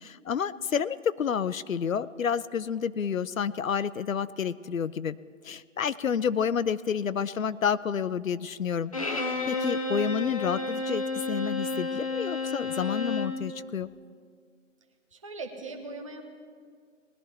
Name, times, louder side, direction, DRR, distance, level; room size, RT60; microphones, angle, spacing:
voice 1, 0.0-5.2 5.4-13.9, left 7 dB, 80° left, 17 dB, 0.6 m, -29 dB
Bowed string instrument, 8.9-13.4, left 3 dB, 25° left, 0.8 m, -31 dB
voice 2, 15.1-16.2, right 3 dB, 25° right, 3 dB, 1.0 m, -39 dB
19.5 x 11.0 x 3.4 m, 2.1 s
figure-of-eight pair, 160°, 39 cm